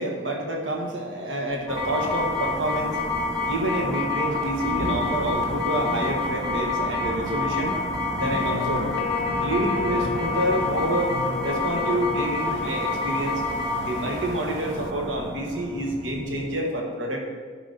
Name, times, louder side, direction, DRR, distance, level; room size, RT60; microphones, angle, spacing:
voice 1, 0.0-7.8 8.2-8.9 9.4-11.1 11.4-13.4 13.8-17.2, right 1 dB, 75° right, 0 dB, 1.5 m, -28 dB
sound 1, 1.7-16.6, left 2 dB, 20° right, 1.8 m, -28 dB
sound 2, 4.6-11.4, equal, 55° right, 1.7 m, -35 dB
sound 3, 8.4-14.9, left 7 dB, 70° left, 0.4 m, -35 dB
10.5 x 5.0 x 4.1 m, 1.5 s
head